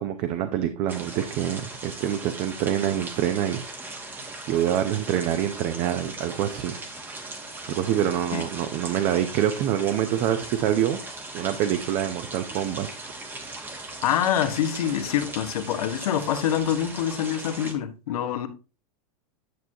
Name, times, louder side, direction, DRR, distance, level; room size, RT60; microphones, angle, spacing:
voice 1, 0.0-3.6 4.5-6.8 7.7-11.0 11.3-12.9, right 11 dB, 35° right, 0.6 m, -26 dB
sound 1, 0.9-17.7, right 2 dB, 10° right, 1.0 m, -39 dB
voice 2, 14.0-18.5, left 10 dB, 75° left, 1.2 m, -25 dB
9.4 x 6.1 x 2.8 m
supercardioid pair, 155°, 19 cm